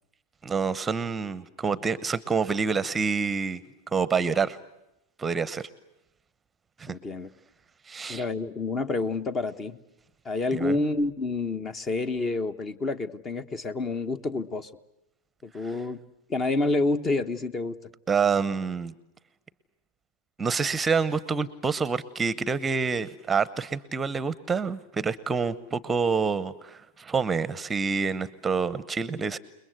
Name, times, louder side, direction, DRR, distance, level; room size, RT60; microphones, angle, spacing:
voice 1, 0.4-3.6 3.9-4.6 5.2-5.7 6.8-6.9 7.9-8.2 10.6-10.7 18.1-18.9 20.4-29.4, right 5 dB, 15° right, 18 dB, 0.9 m, -27 dB
voice 2, 6.9-7.3 8.1-9.8 10.2-14.7 15.4-16.0 16.3-17.8, left 3 dB, 25° left, 13 dB, 1.3 m, -28 dB
29.5 x 21.0 x 8.0 m, 0.88 s
figure-of-eight pair, 95°, 0 cm